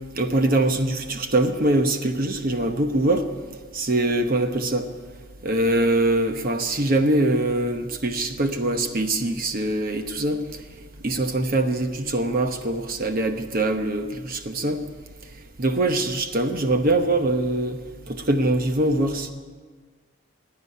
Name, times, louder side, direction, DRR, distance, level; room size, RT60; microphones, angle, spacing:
voice 1, 0.2-3.3 3.7-4.9 5.4-10.4 11.0-14.8 15.6-17.8 18.1-19.3, right 2 dB, 45° right, 6 dB, 1.0 m, -23 dB
15.5 x 9.6 x 9.6 m, 1.5 s
head